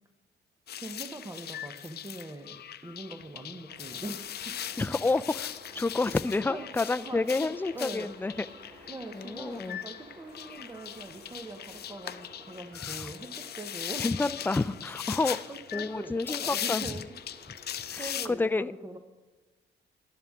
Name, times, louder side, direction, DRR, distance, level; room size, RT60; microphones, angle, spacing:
sound 1, 0.7-18.3, left 10 dB, 55° left, 0.6 m, -39 dB
voice 1, 0.8-4.2 4.4-4.6 6.5-6.7 7.0-8.1 8.9-14.1 15.5-17.1 18.0-19.0, right 2 dB, 15° right, 6 dB, 0.9 m, -42 dB
sound 2, 3.7-18.3, equal, 45° right, 3.3 m, -53 dB
voice 2, 4.8-5.5 5.8-8.5 9.1-9.8 12.8-13.1 14.0-15.4 15.7-16.8 17.9-18.7, left 3 dB, 10° left, 14 dB, 0.4 m, -29 dB
12.5 x 11.0 x 3.6 m, 1.2 s
cardioid pair, 90°, 20 cm